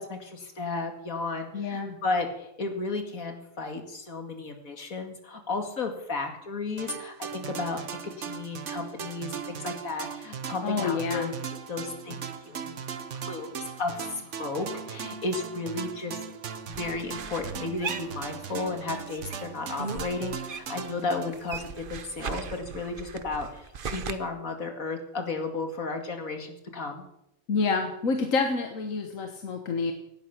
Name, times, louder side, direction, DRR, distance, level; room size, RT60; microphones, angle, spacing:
voice 1, 0.0-11.3 11.7-12.1 12.5-12.8 13.1-16.2 16.7-27.1, left 3 dB, 90° left, 5 dB, 2.6 m, -34 dB
voice 2, 1.5-1.9 10.6-11.3 21.1-21.3 27.5-29.9, left 4 dB, 75° left, 5 dB, 1.6 m, -28 dB
sound 1, 6.8-22.2, right 7 dB, 65° right, 1.3 m, -38 dB
sound 2, 16.7-18.8 19.1-20.9 21.2-24.1, right 5 dB, 45° right, 0.9 m, -38 dB
17.5 x 10.5 x 6.0 m, 0.81 s
omnidirectional pair, 1.4 m